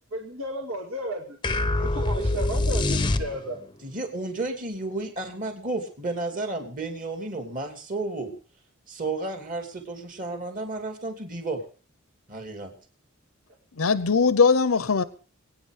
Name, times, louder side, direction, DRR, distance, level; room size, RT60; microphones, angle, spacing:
voice 1, 0.1-1.4 1.8-3.6, right 1 dB, 80° right, 2.2 m, -33 dB
sound 1, 1.4-3.7, left 2 dB, 25° left, 0.7 m, -25 dB
voice 2, 3.8-8.3 8.9-11.6 12.3-12.7, right 2 dB, 40° right, 2.9 m, -32 dB
voice 3, 13.8-15.0, left 5 dB, 85° left, 0.8 m, -20 dB
23.0 x 9.4 x 5.0 m
head